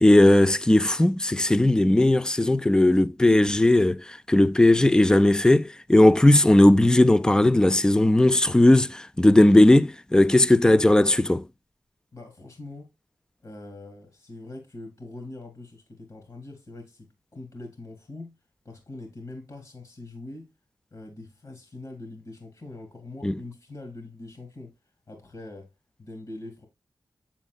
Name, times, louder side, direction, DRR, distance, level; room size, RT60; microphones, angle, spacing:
voice 1, 0.0-11.4 23.2-23.3, left 1 dB, 10° left, 0.4 m, -18 dB
voice 2, 12.1-12.9 13.4-18.3 18.6-20.5 20.9-24.8 25.1-25.7 26.0-26.7, left 2 dB, 60° left, 2.4 m, -42 dB
7.4 x 7.2 x 2.3 m
cardioid pair, 40°, 7 cm